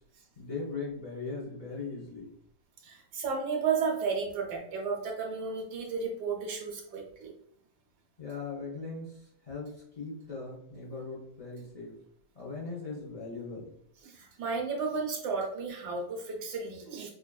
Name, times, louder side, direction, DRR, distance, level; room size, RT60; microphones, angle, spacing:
voice 1, 0.4-2.3 8.2-12.0 12.3-13.7, left 4 dB, 55° left, -5 dB, 0.4 m, -39 dB
voice 2, 2.8-7.3 14.0-17.1, right 5 dB, 65° right, 1 dB, 1.4 m, -33 dB
5.2 x 2.5 x 2.2 m, 0.71 s
omnidirectional pair, 2.0 m